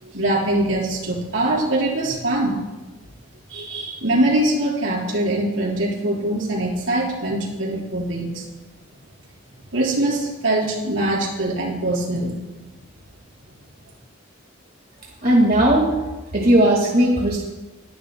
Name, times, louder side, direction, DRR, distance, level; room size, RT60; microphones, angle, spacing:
voice 1, 0.0-2.6 3.5-8.4 9.7-12.4, right 1 dB, 80° right, -4 dB, 4.6 m, -23 dB
voice 2, 15.2-16.1 16.3-17.4, right 1 dB, 50° right, -2 dB, 1.8 m, -17 dB
20.5 x 12.0 x 2.2 m, 1.1 s
head